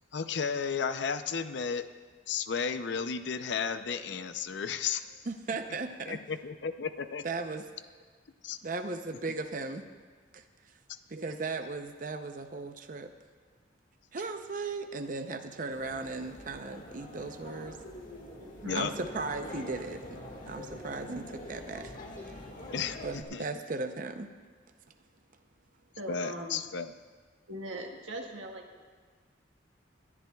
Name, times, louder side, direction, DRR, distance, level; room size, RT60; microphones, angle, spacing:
voice 1, 0.1-1.9 2.3-5.2 6.1-7.2 8.4-8.6 18.7-18.9 22.7-23.5 26.1-26.9, left 6 dB, 60° left, 10 dB, 0.5 m, -33 dB
voice 2, 5.3-6.2 7.2-7.6 8.6-9.8 10.3-10.4 11.1-13.1 14.1-17.8 18.7-20.2 20.5-21.9 23.0-24.3, right 3 dB, 45° right, 7 dB, 0.6 m, -37 dB
sound 1, 15.7-23.2, left 1 dB, 40° left, 1.7 m, -45 dB
voice 3, 18.4-18.9 21.1-21.2 26.0-26.6 27.5-28.8, right 1 dB, 75° right, 1 dB, 1.5 m, -40 dB
26.5 x 11.0 x 2.3 m, 1.5 s
head